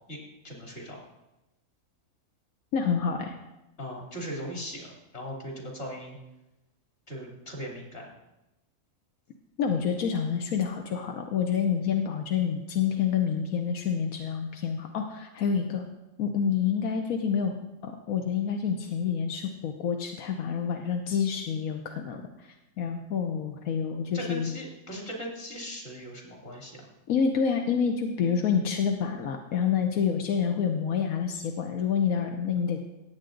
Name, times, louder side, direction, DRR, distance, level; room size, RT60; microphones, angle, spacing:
voice 1, 0.4-1.0 3.8-6.2 7.1-8.1 24.1-26.9, equal, 50° left, -1 dB, 3.2 m, -39 dB
voice 2, 2.7-3.3 9.6-15.9 16.2-17.6 17.8-24.5 27.1-32.8, left 7 dB, 85° left, 4 dB, 1.3 m, -28 dB
17.5 x 8.2 x 3.9 m, 0.96 s
omnidirectional pair, 1.4 m